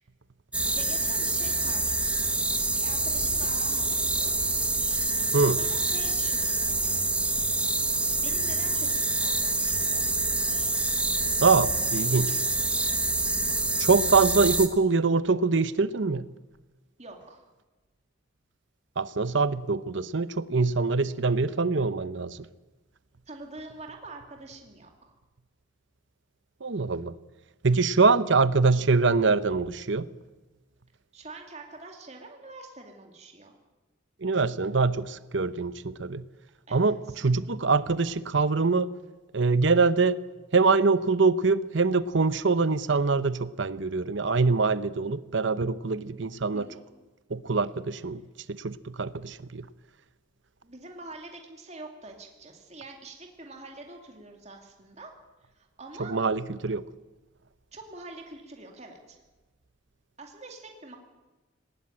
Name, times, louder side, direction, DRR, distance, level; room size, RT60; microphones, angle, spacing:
sound 1, 0.5-14.7, right 2 dB, 5° right, 1.1 m, -26 dB
voice 1, 0.7-2.4 2.7-4.3 5.6-7.0 8.2-10.2 17.0-17.5 23.3-25.1 31.1-33.6 36.7-37.2 46.5-46.8 50.6-55.1 55.5-56.1 57.7-59.2 60.2-61.0, right 2 dB, 35° right, 2 dB, 2.6 m, -45 dB
voice 2, 11.4-12.4 13.8-16.3 19.0-22.4 26.6-27.1 27.6-30.1 34.2-36.2 36.7-37.0 37.2-38.9 39.3-40.2 40.5-46.7 47.3-48.2 48.5-49.7 56.0-56.8, right 4 dB, 65° right, 15 dB, 0.8 m, -24 dB
18.5 x 18.5 x 8.8 m, 1.2 s
head